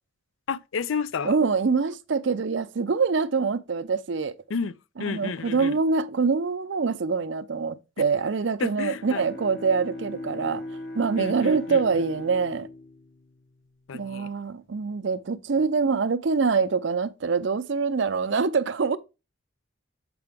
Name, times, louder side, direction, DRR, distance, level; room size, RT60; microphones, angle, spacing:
voice 1, 0.5-1.4 4.5-4.7 5.0-5.8 8.6-9.2 11.2-11.8 13.9-14.3, left 5 dB, 75° left, 0.4 m, -31 dB
voice 2, 1.2-4.3 5.1-10.6 10.9-12.7 13.9-19.0, right 5 dB, 65° right, 0.5 m, -25 dB
Bowed string instrument, 8.7-14.3, left 1 dB, 50° left, 1.0 m, -39 dB
7.7 x 4.9 x 3.4 m
head